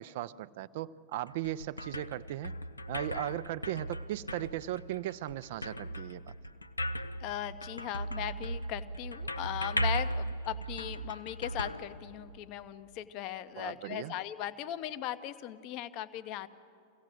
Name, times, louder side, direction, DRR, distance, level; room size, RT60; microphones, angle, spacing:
voice 1, 0.0-2.5 2.9-6.3 13.6-14.1, right 14 dB, 50° right, 16 dB, 0.5 m, -37 dB
sound 1, 1.1-12.6, equal, 80° left, 0.5 m, -37 dB
voice 2, 7.2-16.5, left 12 dB, 40° left, 13 dB, 0.7 m, -38 dB
24.5 x 16.5 x 7.7 m, 2.4 s
figure-of-eight pair, 90°, 0 cm